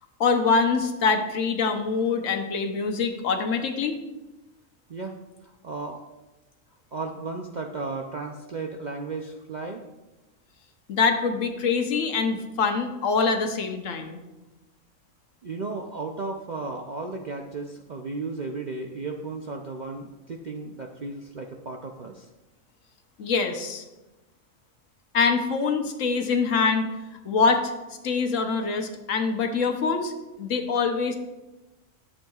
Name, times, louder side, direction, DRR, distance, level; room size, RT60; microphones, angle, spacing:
voice 1, 0.2-4.0 10.9-14.2 23.2-23.8 25.1-26.9 27.2-27.7 28.0-31.2, left 4 dB, 75° left, 5 dB, 1.2 m, -24 dB
voice 2, 4.9-6.0 6.9-9.8 15.4-22.3, right 3 dB, 55° right, 2 dB, 0.5 m, -34 dB
12.0 x 7.2 x 2.3 m, 1.1 s
omnidirectional pair, 1.4 m